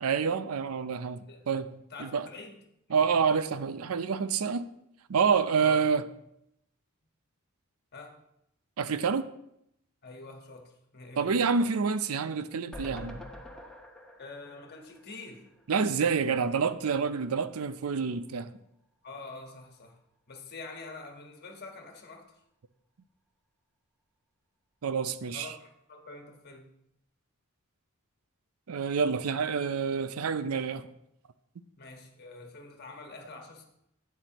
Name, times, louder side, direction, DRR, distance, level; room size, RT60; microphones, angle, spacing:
voice 1, 0.0-1.7 2.0-2.3 2.9-4.7 5.1-6.0 8.8-9.3 11.2-13.2 15.7-18.6 24.8-25.5 28.7-30.9, right 5 dB, 85° right, 13 dB, 0.5 m, -28 dB
voice 2, 1.9-2.6 2.9-3.0 5.6-5.8 7.9-8.2 10.0-11.3 14.2-15.5 19.0-20.0 20.3-22.4 25.3-26.7 31.7-33.6, left 3 dB, 50° left, 3 dB, 1.4 m, -46 dB
sound 1, 12.7-16.0 16.3-16.4 16.7-16.8, left 1 dB, 5° left, 0.9 m, -46 dB
11.5 x 8.3 x 3.0 m, 0.78 s
head